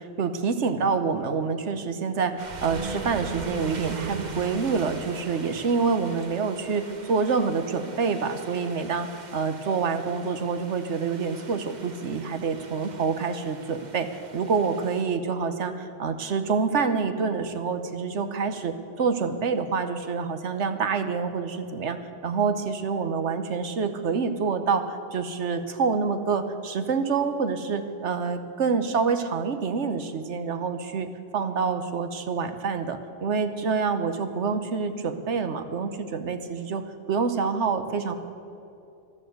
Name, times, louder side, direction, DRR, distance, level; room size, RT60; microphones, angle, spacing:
voice 1, 0.0-22.0 22.2-38.1, right 5 dB, 70° right, 9 dB, 1.3 m, -27 dB
sound 1, 2.4-15.0, right 3 dB, 40° right, 1.2 m, -40 dB
14.0 x 12.0 x 7.9 m, 2.8 s
omnidirectional pair, 1.3 m